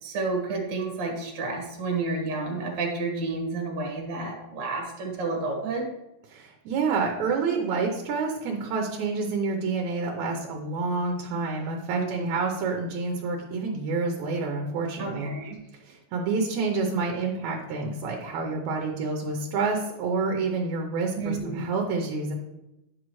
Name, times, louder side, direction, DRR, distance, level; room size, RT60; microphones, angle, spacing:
voice 1, 0.0-5.9 11.9-12.3 15.0-15.6 21.2-21.6, right 3 dB, 45° right, 0 dB, 2.0 m, -30 dB
voice 2, 6.3-15.3 15.8-22.3, right 4 dB, 75° right, 1 dB, 2.2 m, -28 dB
10.0 x 6.3 x 3.1 m, 0.91 s
omnidirectional pair, 3.4 m